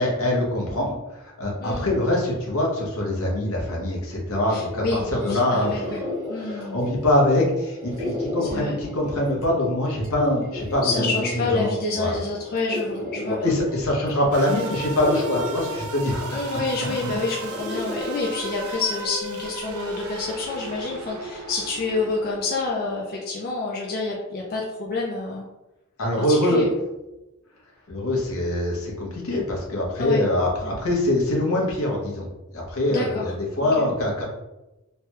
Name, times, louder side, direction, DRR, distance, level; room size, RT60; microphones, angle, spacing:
voice 1, 0.0-6.0 6.4-12.2 13.2-16.4 26.0-26.6 27.9-34.2, left 1 dB, 85° left, -2 dB, 1.0 m, -24 dB
voice 2, 4.5-6.0 6.3-6.8 8.4-8.8 10.8-13.5 16.3-25.4 26.2-26.7 30.0-30.2 30.6-30.7 32.9-33.3 33.6-33.9, left 3 dB, 45° left, -3 dB, 0.4 m, -28 dB
sound 1, 5.1-19.1, left 1 dB, 35° right, 1.2 m, -35 dB
sound 2, 14.3-23.1, right 2 dB, 75° right, 0.4 m, -36 dB
3.2 x 2.2 x 3.0 m, 1.0 s
head